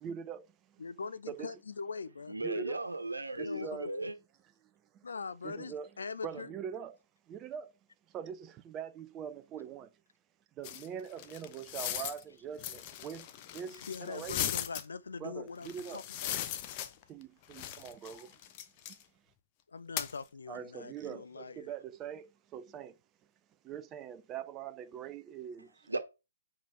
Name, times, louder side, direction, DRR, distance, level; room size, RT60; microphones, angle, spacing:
voice 1, 0.0-0.8 1.3-1.6 2.4-2.8 3.4-4.0 4.9-5.1 5.4-5.9 6.2-7.0 7.3-7.7 8.1-9.9 10.6-13.3 13.5-14.4 15.2-16.1 17.1-18.4 20.5-23.0 23.6-25.9, right 8 dB, 20° right, 0.4 m, -43 dB
voice 2, 0.8-2.3 3.4-3.8 5.0-6.5 13.8-16.4 19.7-21.7, left 5 dB, 65° left, 0.7 m, -42 dB
voice 3, 2.3-4.1 25.9-26.0, right 2 dB, 75° right, 1.2 m, -36 dB
sound 1, 10.6-12.2 12.6-14.8 15.6-17.2 17.5-19.0 20.0-20.1, left 12 dB, 30° left, 0.6 m, -38 dB
5.0 x 5.0 x 4.8 m
figure-of-eight pair, 130°, 0 cm